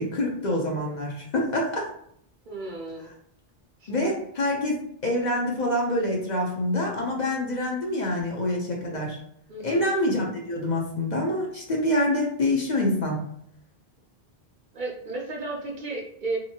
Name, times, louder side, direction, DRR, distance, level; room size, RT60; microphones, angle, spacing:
voice 1, 0.0-1.9 3.9-9.2 9.6-13.2, left 1 dB, 50° left, -1 dB, 0.7 m, -26 dB
voice 2, 2.5-3.1 3.8-4.1 9.5-9.9 14.7-16.4, right 3 dB, 60° right, 0 dB, 0.6 m, -33 dB
2.9 x 2.6 x 2.7 m, 0.68 s
omnidirectional pair, 1.0 m